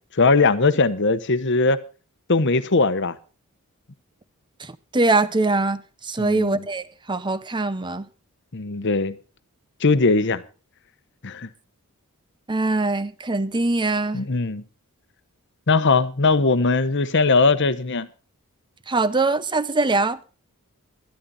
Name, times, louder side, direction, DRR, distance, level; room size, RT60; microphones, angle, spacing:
voice 1, 0.1-1.8 2.3-3.1 6.2-6.6 8.5-9.1 9.8-10.4 11.2-11.5 14.1-14.6 15.7-18.1, left 3 dB, 55° left, 1.0 m, -20 dB
voice 2, 4.6-8.1 12.5-14.2 18.9-20.2, right 3 dB, 20° right, 0.7 m, -23 dB
13.0 x 12.0 x 5.4 m
head